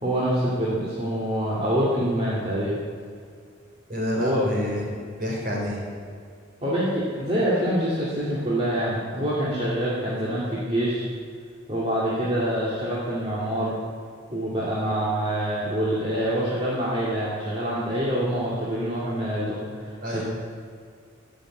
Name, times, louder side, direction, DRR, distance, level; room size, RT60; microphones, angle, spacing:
voice 1, 0.0-2.8 4.1-4.4 6.6-11.0 11.7-13.8 14.3-19.6 20.1-20.2, equal, 30° right, -8 dB, 2.3 m, -25 dB
voice 2, 3.9-5.8 20.0-20.2, equal, 45° right, -3 dB, 4.4 m, -28 dB
14.5 x 7.0 x 8.6 m, 2.2 s
head